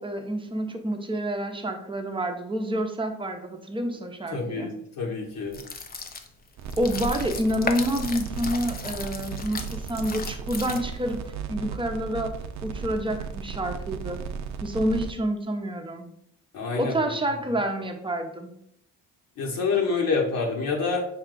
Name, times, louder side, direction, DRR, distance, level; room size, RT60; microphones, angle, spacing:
voice 1, 0.0-4.7 6.8-11.2 11.5-12.3 12.6-14.2 14.6-16.1 16.8-18.5, right 1 dB, 15° right, 5 dB, 0.7 m, -28 dB
voice 2, 4.3-5.6 16.5-17.1 19.4-21.0, left 4 dB, 65° left, -1 dB, 1.3 m, -27 dB
sound 1, 5.5-11.1, left 4 dB, 25° left, 0.5 m, -36 dB
sound 2, 6.6-15.1, right 6 dB, 50° right, 0.5 m, -36 dB
5.5 x 2.3 x 3.8 m, 0.71 s
supercardioid pair, 75°, 36 cm